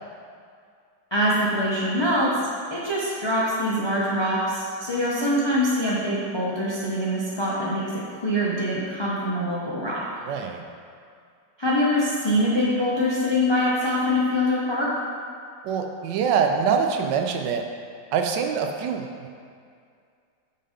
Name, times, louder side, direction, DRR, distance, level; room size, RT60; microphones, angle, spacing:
voice 1, 1.1-2.3 2.7-7.9 8.2-10.0 11.6-14.9, left 1 dB, 45° left, -7 dB, 0.3 m, -24 dB
voice 2, 10.2-10.6 15.6-17.6 18.1-19.3, right 6 dB, 80° right, 4 dB, 1.2 m, -24 dB
5.5 x 3.8 x 5.0 m, 2.3 s
omnidirectional pair, 1.9 m